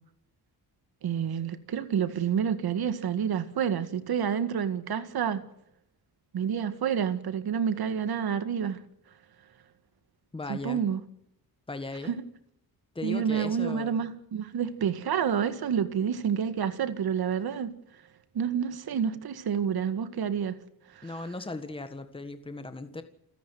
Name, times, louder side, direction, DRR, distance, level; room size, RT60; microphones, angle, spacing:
voice 1, 1.0-5.4 6.3-8.8 10.5-11.0 12.0-12.2 13.0-17.7 18.3-20.6 20.9-21.1, right 7 dB, 70° right, 2.0 m, -29 dB
voice 2, 10.3-10.8 11.7-12.2 12.9-14.0 21.0-23.0, left 2 dB, 15° left, 1.6 m, -37 dB
29.0 x 10.5 x 9.4 m
wide cardioid pair, 135°, 38 cm